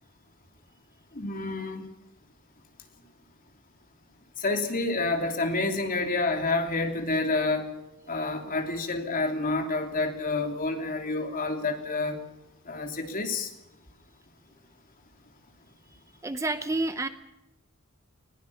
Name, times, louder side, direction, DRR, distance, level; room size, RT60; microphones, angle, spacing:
voice 1, 1.1-1.9 4.4-7.7 8.1-12.2 12.7-13.5, left 3 dB, 40° left, 4 dB, 3.1 m, -28 dB
voice 2, 16.2-17.1, right 2 dB, 15° right, 10 dB, 0.7 m, -29 dB
20.5 x 18.0 x 7.2 m, 0.96 s
head